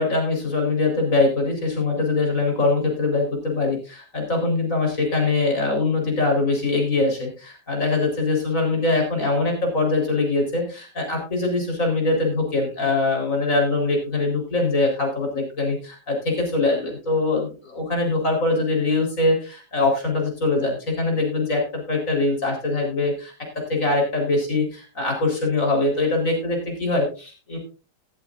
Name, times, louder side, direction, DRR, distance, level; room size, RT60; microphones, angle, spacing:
voice 1, 0.0-23.3 23.7-27.6, left 3 dB, 50° left, 2 dB, 4.6 m, -23 dB
14.0 x 13.5 x 2.5 m, 0.32 s
omnidirectional pair, 1.8 m